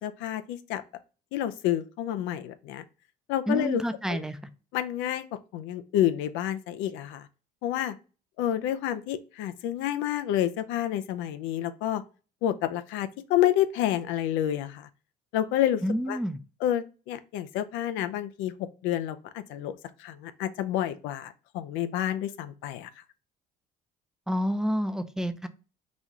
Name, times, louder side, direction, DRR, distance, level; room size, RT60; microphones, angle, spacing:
voice 1, 0.0-0.8 1.3-2.8 3.3-3.8 4.1-4.2 4.7-5.2 5.5-7.3 7.6-8.0 8.4-12.0 12.4-14.9 15.3-15.8 16.1-16.2 16.6-22.9, left 12 dB, 85° left, 0.4 m, -29 dB
voice 2, 3.5-4.4 15.8-16.4 24.3-25.5, equal, 5° right, 0.4 m, -28 dB
4.0 x 2.4 x 2.9 m
supercardioid pair, 90°, 19 cm